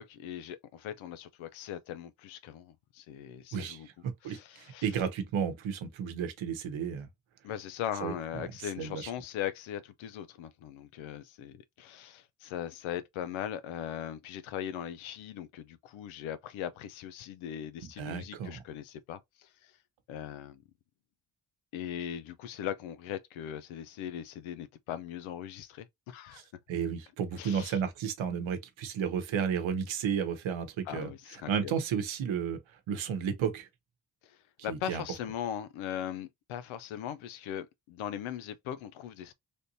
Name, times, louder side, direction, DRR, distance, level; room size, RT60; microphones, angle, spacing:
voice 1, 0.0-3.9 4.2-4.8 7.4-19.7 20.1-20.6 21.7-26.4 27.4-27.8 30.9-31.7 34.2-34.4 34.6-39.3, left 10 dB, 90° left, 0.6 m, -39 dB
voice 2, 3.5-7.1 8.0-9.1 17.8-18.6 26.3-26.4 26.7-33.7 34.7-35.0, right 7 dB, 80° right, 0.8 m, -33 dB
3.3 x 2.7 x 2.6 m
supercardioid pair, 40°, 47 cm